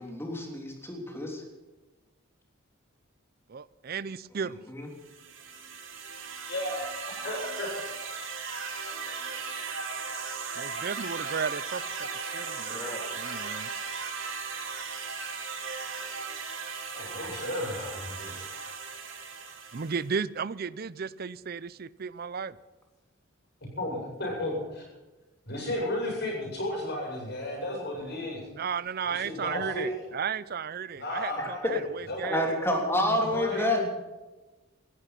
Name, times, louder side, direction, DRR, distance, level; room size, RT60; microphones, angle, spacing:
voice 1, 0.0-1.4 4.4-4.9 12.3-13.1 31.6-31.8 32.2-33.8, left 1 dB, 10° left, 1 dB, 3.3 m, -29 dB
voice 2, 3.5-4.6 10.6-12.1 12.3-12.8 13.1-13.7 19.7-22.6 28.5-32.4 33.6-33.7, right 6 dB, 50° right, 18 dB, 0.5 m, -34 dB
sound 1, 5.0-20.1, right 5 dB, 70° right, 2.7 m, -37 dB
voice 3, 6.5-6.9 7.2-7.7 8.0-8.2 16.9-18.6 23.8-24.8 25.5-28.5 29.0-29.9 31.0-31.6 32.1-32.5 32.9-33.9, left 1 dB, 55° left, -1 dB, 7.8 m, -34 dB
18.0 x 13.5 x 5.9 m, 1.2 s
head